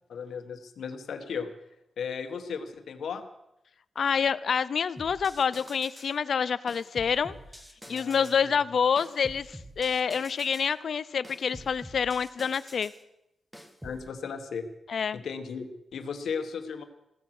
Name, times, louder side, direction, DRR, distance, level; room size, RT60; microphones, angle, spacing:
voice 1, 0.1-1.5 2.0-3.3 7.9-8.5 13.8-14.6 15.1-16.8, left 6 dB, 80° left, 7 dB, 1.5 m, -36 dB
voice 2, 4.0-7.3 7.9-12.9 14.9-15.2, left 6 dB, 55° left, 17 dB, 0.5 m, -27 dB
sound 1, 5.0-6.2 6.7-8.4 9.0-10.7 11.2-13.0 13.5-14.0, equal, 5° right, 1.4 m, -47 dB
15.5 x 14.0 x 6.1 m, 0.86 s
wide cardioid pair, 155°, 0 cm